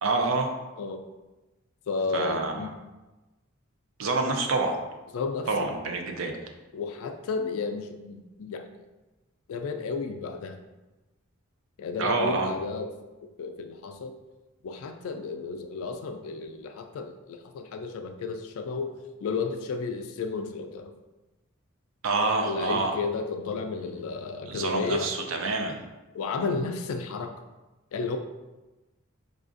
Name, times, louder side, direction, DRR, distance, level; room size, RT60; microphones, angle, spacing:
voice 1, 0.0-0.6 2.1-2.7 4.0-4.8 5.5-6.4 12.0-12.5 22.0-22.9 24.5-25.8, right 3 dB, 70° right, 4 dB, 0.5 m, -27 dB
voice 2, 1.9-2.7 5.1-5.7 6.7-8.7 9.5-10.6 11.8-12.9 13.4-14.1 14.6-20.9 22.4-25.1 26.1-27.3 27.9-28.2, left 4 dB, 75° left, 6 dB, 0.3 m, -32 dB
4.9 x 2.4 x 2.5 m, 1.1 s
head